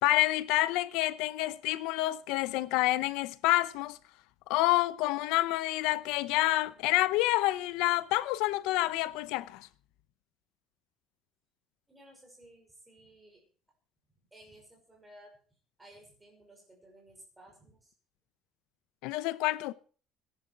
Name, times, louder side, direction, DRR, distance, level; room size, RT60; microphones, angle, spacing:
voice 1, 0.0-4.0 4.5-9.7 19.0-19.7, left 17 dB, 80° left, 0.7 m, -28 dB
voice 2, 11.9-13.4 14.3-15.4 15.8-17.9, right 1 dB, 10° right, 5.6 m, -56 dB
17.5 x 11.0 x 4.7 m
cardioid pair, 175°, 0 cm